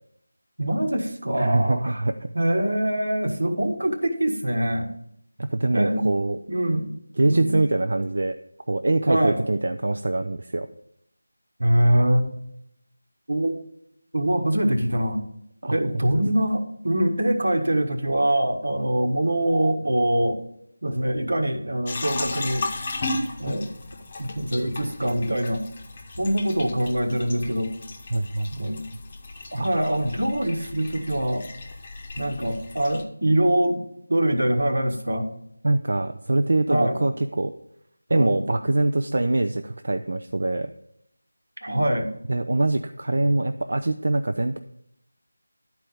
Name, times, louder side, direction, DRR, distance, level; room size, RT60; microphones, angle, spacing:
voice 1, 0.6-2.0 2.3-4.9 5.7-6.1 6.5-6.9 7.2-7.6 9.1-9.4 11.6-12.3 13.3-13.5 14.1-15.2 15.7-20.4 20.8-22.7 23.4-23.7 24.2-25.6 26.2-27.7 28.5-28.9 29.5-31.5 32.2-35.3 36.7-37.0 38.1-38.4 41.6-42.1, right 1 dB, 80° right, 6 dB, 1.4 m, -23 dB
voice 2, 1.4-2.3 5.4-6.4 7.2-8.4 8.7-10.7 15.6-15.8 28.1-28.8 29.6-29.7 35.6-37.5 38.1-40.7 42.3-44.6, right 2 dB, 60° right, 7 dB, 0.5 m, -24 dB
sound 1, 21.9-33.0, left 2 dB, 25° left, 0.8 m, -35 dB
11.0 x 4.5 x 5.3 m, 0.75 s
figure-of-eight pair, 170°, 0 cm